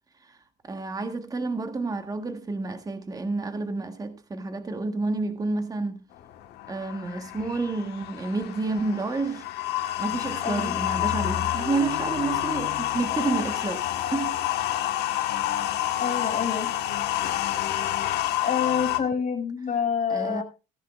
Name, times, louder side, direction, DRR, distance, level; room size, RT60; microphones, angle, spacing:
voice 1, 0.6-6.1 6.7-9.5 10.0-14.4 20.1-20.4, right 3 dB, 20° right, 1.5 m, -30 dB
sound 1, 6.2-19.0, left 13 dB, 85° left, 1.5 m, -28 dB
voice 2, 10.4-10.8 16.0-16.7 18.4-20.4, left 7 dB, 45° left, 5.7 m, -27 dB
17.5 x 10.5 x 2.5 m
cardioid pair, 110°, 17 cm